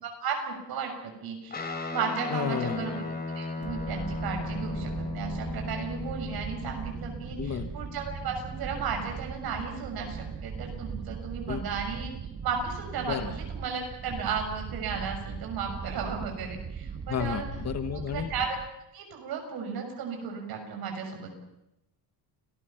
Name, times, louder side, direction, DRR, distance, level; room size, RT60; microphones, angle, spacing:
voice 1, 0.0-3.0 3.3-12.1 12.4-17.5 17.9-18.6 18.9-21.3, right 6 dB, 65° right, 3 dB, 6.8 m, -34 dB
Guitar, 1.5-10.3, left 3 dB, 25° left, 3.5 m, -37 dB
voice 2, 2.3-2.8 7.4-7.7 11.5-11.6 13.1-13.3 17.1-18.3, left 8 dB, 40° left, 10 dB, 1.5 m, -32 dB
sound 1, 3.6-18.7, right 6 dB, 25° right, 1.3 m, -39 dB
29.5 x 19.5 x 5.9 m, 0.88 s
cardioid pair, 150°, 40 cm